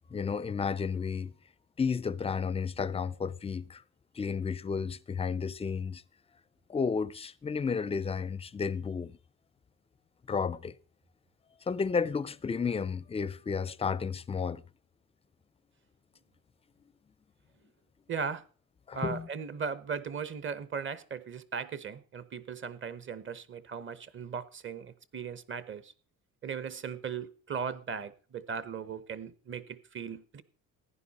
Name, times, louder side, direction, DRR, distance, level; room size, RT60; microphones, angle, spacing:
voice 1, 0.1-1.3 1.8-3.8 4.1-6.0 6.7-9.2 10.3-10.7 11.7-14.6 18.9-19.3, left 5 dB, 20° left, 0.5 m, -32 dB
voice 2, 18.1-18.4 18.9-25.9 26.4-30.4, right 6 dB, 35° right, 1.0 m, -38 dB
15.0 x 10.5 x 4.2 m
cardioid pair, 120°, 34 cm